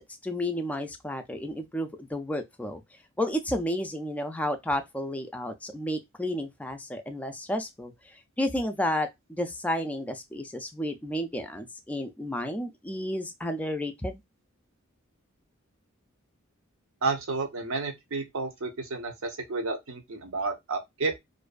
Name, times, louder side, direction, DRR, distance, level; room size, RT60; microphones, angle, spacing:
voice 1, 0.0-2.8 3.2-7.9 8.4-14.2, left 1 dB, 5° left, 0.3 m, -31 dB
voice 2, 17.0-21.1, right 3 dB, 70° right, 0.6 m, -31 dB
2.5 x 2.2 x 2.3 m
head